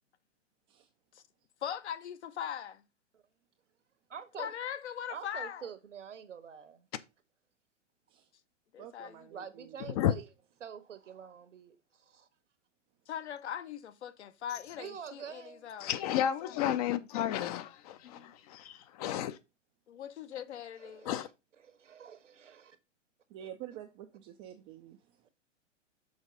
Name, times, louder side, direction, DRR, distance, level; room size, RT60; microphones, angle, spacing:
voice 1, 1.6-2.8 4.4-5.7 8.7-9.3 13.1-16.6 18.0-18.3 19.9-21.1, left 9 dB, 60° left, 0.9 m, -41 dB
voice 2, 4.1-4.5 5.1-6.9 9.3-10.3 10.6-12.3 14.8-15.7 20.8-21.1 21.6-22.8, right 7 dB, 75° right, 1.3 m, -46 dB
voice 3, 8.8-9.8 23.3-25.0, right 11 dB, 20° right, 0.4 m, -48 dB
voice 4, 15.8-19.4 21.0-21.3, left 11 dB, 30° left, 0.6 m, -32 dB
6.4 x 4.6 x 5.2 m
figure-of-eight pair, 110°, 38 cm